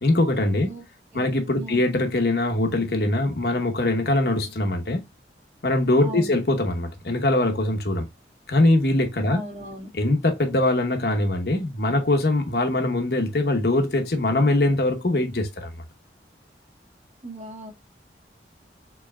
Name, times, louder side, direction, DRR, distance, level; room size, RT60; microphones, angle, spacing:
voice 1, 0.0-0.7 1.1-5.0 5.6-8.1 8.5-9.4 10.0-15.7, left 2 dB, 60° left, 0.9 m, -22 dB
voice 2, 6.0-6.4 9.3-9.9 17.2-17.7, equal, 40° right, 1.6 m, -37 dB
4.7 x 4.0 x 2.2 m
head